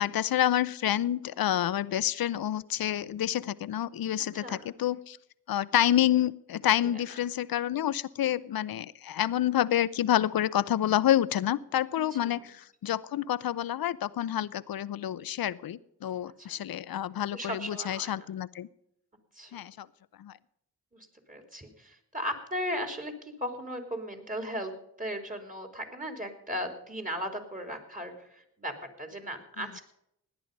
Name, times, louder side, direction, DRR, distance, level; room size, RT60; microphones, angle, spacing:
voice 1, 0.0-5.2 5.5-18.7 19.5-19.9 20.2-20.3 29.6-29.7, left 11 dB, 65° left, 18 dB, 0.7 m, -28 dB
voice 2, 4.3-4.7 6.8-7.0 12.1-12.5 16.3-16.6 17.3-18.3 19.3-19.6 20.9-28.7 29.0-29.8, equal, 20° right, 5 dB, 3.4 m, -37 dB
17.0 x 10.0 x 5.3 m, 0.78 s
cardioid pair, 55°, 38 cm